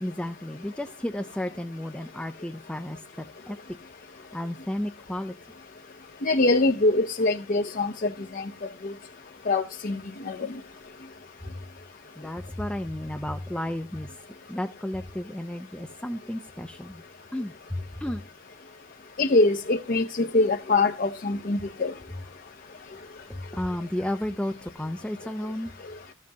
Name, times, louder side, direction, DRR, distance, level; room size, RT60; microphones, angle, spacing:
voice 1, 0.0-3.6 4.3-5.3 11.5-11.6 12.2-14.1 14.5-17.0 17.3-18.2 23.3-25.7, left 1 dB, 5° left, 0.5 m, -33 dB
voice 2, 6.2-8.4 8.8-8.9 9.5-10.0 10.3-10.5 19.2-21.9, left 2 dB, 50° left, 0.7 m, -23 dB
14.0 x 7.4 x 2.8 m
head